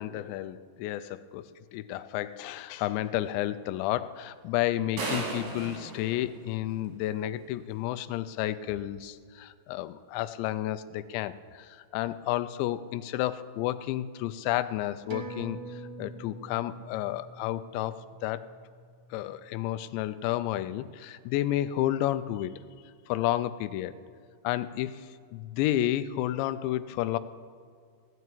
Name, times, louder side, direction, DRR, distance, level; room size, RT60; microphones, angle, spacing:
voice 1, 0.0-18.5 19.1-22.5 23.1-23.9 24.4-27.2, left 13 dB, 85° left, 13 dB, 2.7 m, -31 dB
sound 1, 5.0-7.1, right 3 dB, 70° right, 4.8 m, -35 dB
sound 2, 15.1-20.0 20.4-20.5, right 3 dB, 90° right, 1.3 m, -45 dB
16.0 x 9.1 x 8.4 m, 2.1 s
omnidirectional pair, 5.4 m